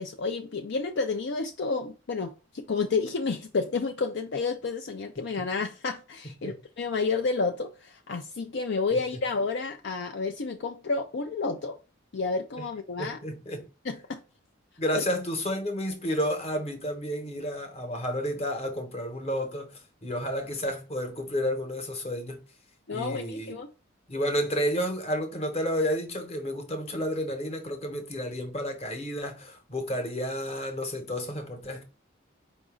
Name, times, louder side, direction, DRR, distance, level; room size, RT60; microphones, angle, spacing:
voice 1, 0.0-11.8 12.1-13.2 13.8-14.2 14.9-15.0 22.9-23.7, left 4 dB, 65° left, 0.5 m, -30 dB
voice 2, 13.0-13.7 14.8-22.4 22.9-23.5 24.1-31.8, equal, 30° left, 1.1 m, -31 dB
5.0 x 2.6 x 3.6 m
head